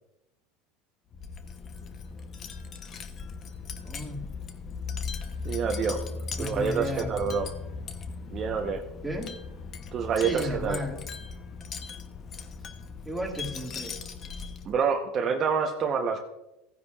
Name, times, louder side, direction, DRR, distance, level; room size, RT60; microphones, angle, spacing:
Wind chime, 1.1-14.8, left 5 dB, 35° left, 0.8 m, -38 dB
voice 1, 3.8-4.3 6.4-7.4 9.0-9.3 10.2-11.0 12.6-12.7 13.0-14.0, equal, 5° right, -1 dB, 2.1 m, -34 dB
voice 2, 5.4-6.0 6.4-7.5 8.3-8.8 9.9-10.8 14.6-16.2, right 6 dB, 35° right, 2 dB, 0.9 m, -27 dB
15.5 x 9.7 x 2.4 m, 0.90 s
supercardioid pair, 120°, 0 cm